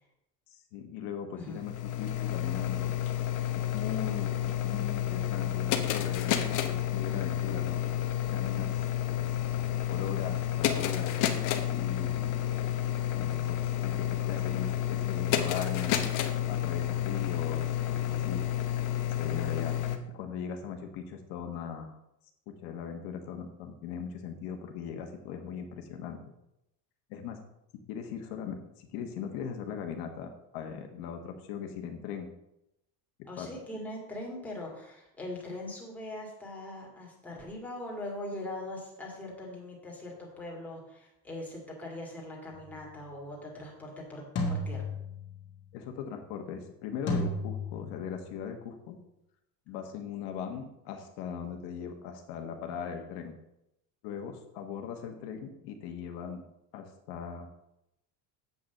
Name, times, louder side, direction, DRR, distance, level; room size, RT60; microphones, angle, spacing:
voice 1, 0.5-2.9 3.5-7.8 8.3-8.9 9.2-11.1 11.7-12.5 13.1-16.0 16.5-18.4 19.0-19.8 20.1-22.0 22.5-26.3 27.1-27.4 27.9-32.3 33.2-33.5 45.7-49.0 49.7-53.3 54.0-56.4 56.7-57.5, left 7 dB, 70° left, 5 dB, 1.4 m, -39 dB
sound 1, 1.5-20.0, left 12 dB, 45° left, 1.0 m, -30 dB
voice 2, 33.3-44.8, left 1 dB, 5° left, -3 dB, 2.2 m, -41 dB
Ganon Mid Tom Drum, 42.5-42.8 44.4-45.5 47.1-48.3, left 1 dB, 25° left, 1.9 m, -34 dB
8.1 x 5.3 x 7.2 m, 0.85 s
cardioid pair, 180°, 42 cm